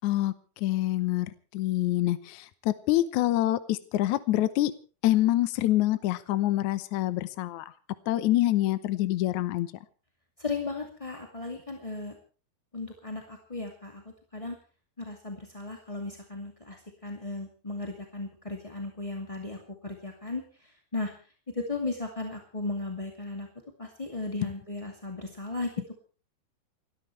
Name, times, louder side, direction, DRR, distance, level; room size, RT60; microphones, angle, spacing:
voice 1, 0.0-4.7 5.0-7.7 8.1-9.7, left 15 dB, 70° left, 13 dB, 1.9 m, -26 dB
voice 2, 10.4-12.1 12.7-14.0 14.3-14.5 15.0-21.1 21.5-23.5 23.8-25.7, left 3 dB, 15° left, 2 dB, 1.4 m, -36 dB
30.0 x 13.5 x 3.3 m, 0.36 s
omnidirectional pair, 4.4 m